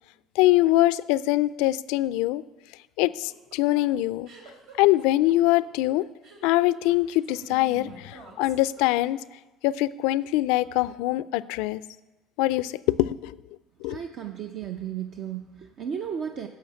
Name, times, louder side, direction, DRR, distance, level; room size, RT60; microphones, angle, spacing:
voice 1, 0.4-2.4 3.0-4.3 4.8-6.1 6.4-9.2 9.6-11.8 12.4-13.3 13.8-14.0, left 16 dB, 85° left, 17 dB, 0.3 m, -23 dB
sound 1, 3.0-9.3, right 3 dB, 75° right, 2.8 m, -48 dB
voice 2, 13.9-16.5, right 8 dB, 55° right, 5 dB, 0.7 m, -34 dB
11.0 x 6.8 x 8.2 m, 1.1 s
supercardioid pair, 105°, 0 cm